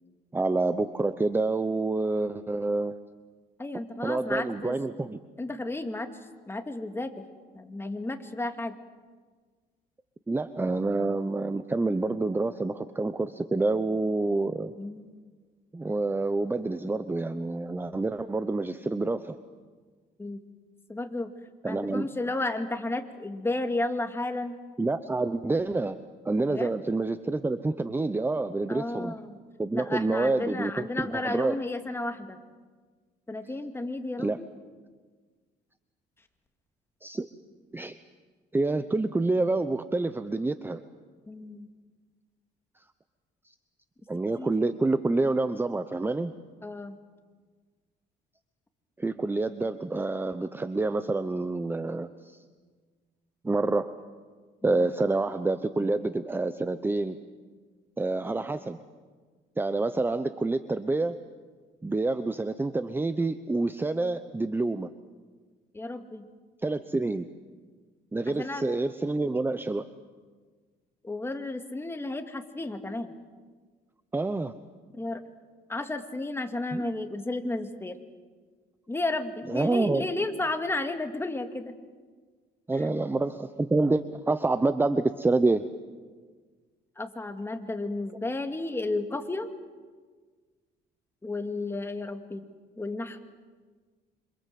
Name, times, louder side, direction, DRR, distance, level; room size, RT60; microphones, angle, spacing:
voice 1, 0.3-2.9 4.0-5.2 10.3-14.7 15.7-19.4 21.6-22.1 24.8-26.0 26.2-29.1 29.6-31.5 34.2-34.4 37.0-37.3 37.7-38.0 38.5-40.8 44.1-46.3 49.0-52.4 53.4-53.9 54.6-57.2 58.0-58.8 59.6-61.2 61.8-64.9 66.6-67.3 68.1-69.9 74.1-74.5 76.7-77.1 79.5-80.0 82.7-85.6, right 2 dB, 10° right, 11 dB, 0.9 m, -27 dB
voice 2, 3.6-4.7 5.4-6.1 6.5-7.2 7.5-8.8 14.8-15.1 20.2-20.4 20.9-21.3 21.6-24.6 26.5-26.7 28.7-29.4 29.7-32.4 33.3-34.5 41.3-41.7 44.4-44.5 46.6-47.0 54.6-54.9 65.7-66.3 68.3-68.6 71.0-73.1 74.9-75.2 75.7-78.0 78.9-81.7 82.8-82.9 87.0-89.5 91.2-92.4 92.8-93.2, left 2 dB, 15° left, 6 dB, 2.3 m, -33 dB
27.5 x 26.0 x 7.7 m, 1.5 s
cardioid pair, 110°, 17 cm